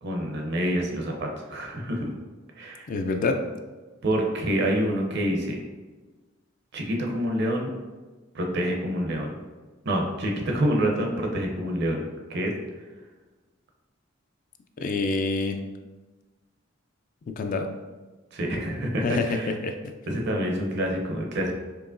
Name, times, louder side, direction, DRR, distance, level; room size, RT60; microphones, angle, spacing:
voice 1, 0.0-2.1 2.6-2.8 4.0-5.6 6.7-7.7 8.3-9.3 9.9-12.0 12.3-12.5 18.3-19.5 20.1-21.5, equal, 60° right, 1 dB, 0.6 m, -27 dB
voice 2, 2.9-3.4 14.8-15.6 17.4-17.7 19.0-19.9, left 3 dB, 45° left, 6 dB, 0.3 m, -27 dB
4.6 x 2.9 x 2.5 m, 1.3 s
head